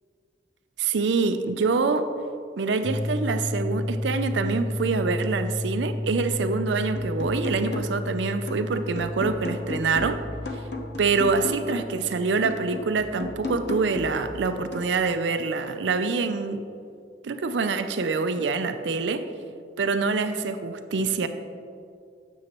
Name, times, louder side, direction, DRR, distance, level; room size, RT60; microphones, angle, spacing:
voice 1, 0.8-2.1 2.6-10.2 11.0-16.6 17.2-19.3 19.8-21.3, right 4 dB, 90° right, 9 dB, 0.5 m, -25 dB
sound 1, 2.8-14.7, left 1 dB, 20° left, 0.4 m, -33 dB
sound 2, 7.0-8.1 8.5-12.0 12.4-15.0, left 2 dB, 75° left, 0.8 m, -36 dB
9.4 x 7.2 x 3.0 m, 2.3 s
head